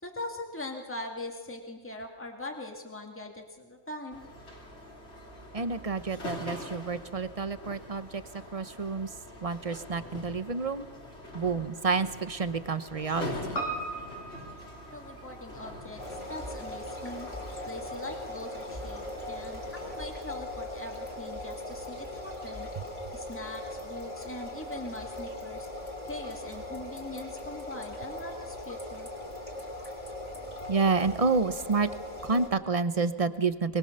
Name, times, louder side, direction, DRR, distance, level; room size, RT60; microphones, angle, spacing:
voice 1, 0.0-4.3 14.9-17.3 17.7-22.7 23.1-25.7 26.1-29.1, left 2 dB, 10° left, 1 dB, 2.3 m, -41 dB
sound 1, 4.1-19.9, left 1 dB, 65° left, 3.6 m, -44 dB
voice 2, 5.5-8.2 8.5-9.1 9.4-10.9 11.3-13.6 30.7-31.9 32.2-33.8, right 4 dB, 35° right, 12 dB, 0.9 m, -29 dB
Piano, 13.5-18.1 18.3-18.4, right 2 dB, 85° left, 3.4 m, -40 dB
sound 2, 16.0-32.5, left 1 dB, 30° left, 2.9 m, -39 dB
23.5 x 20.0 x 6.7 m, 1.3 s
omnidirectional pair, 1.2 m